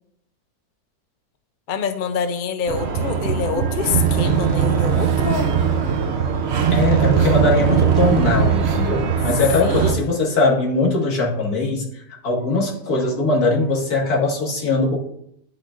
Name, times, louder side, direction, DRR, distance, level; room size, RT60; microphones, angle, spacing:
voice 1, 1.7-5.5 9.6-10.1, left 6 dB, 90° left, 8 dB, 0.4 m, -26 dB
sound 1, 2.7-9.9, right 7 dB, 50° right, 0.8 m, -20 dB
voice 2, 6.7-15.0, left 3 dB, 65° left, -3 dB, 2.2 m, -21 dB
10.5 x 6.1 x 2.5 m, 0.72 s
omnidirectional pair, 1.8 m